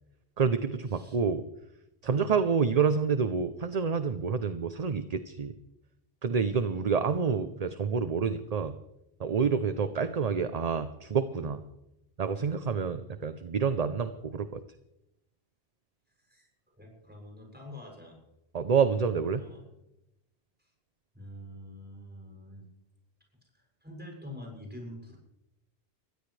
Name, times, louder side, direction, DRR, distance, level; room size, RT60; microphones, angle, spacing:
voice 1, 0.4-1.4 2.0-5.5 6.2-8.7 9.2-11.6 12.2-14.6 18.5-19.4, right 6 dB, 40° right, 10 dB, 0.7 m, -28 dB
voice 2, 16.2-16.5 16.7-18.2 19.4-19.6 20.6-20.7 21.1-22.6 23.4-25.2, left 1 dB, 10° right, -1 dB, 7.2 m, -46 dB
22.0 x 16.0 x 3.3 m, 0.88 s
omnidirectional pair, 1.1 m